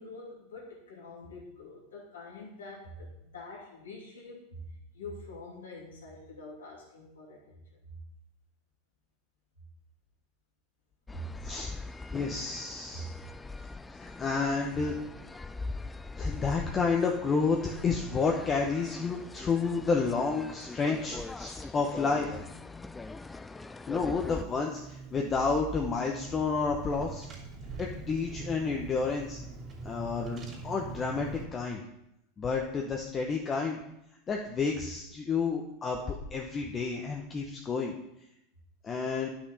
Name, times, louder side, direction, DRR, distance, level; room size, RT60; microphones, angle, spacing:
voice 1, 0.0-7.6 7.9-8.0 11.1-11.3 12.9-13.1 27.7-27.8, left 1 dB, 85° left, -3 dB, 2.7 m, -45 dB
sound 1, 11.1-24.4, left 3 dB, 15° left, 0.4 m, -42 dB
voice 2, 12.1-13.1 13.9-15.0 16.2-22.4 23.9-27.3 27.8-29.4 29.8-31.8 32.4-33.8 34.3-36.0 36.3-38.0 38.8-39.3, left 4 dB, 30° left, 0 dB, 1.0 m, -30 dB
Car / Engine, 24.2-31.4, right 3 dB, 35° right, 3.0 m, -43 dB
10.0 x 5.9 x 4.2 m, 0.83 s
hypercardioid pair, 95°, 0 cm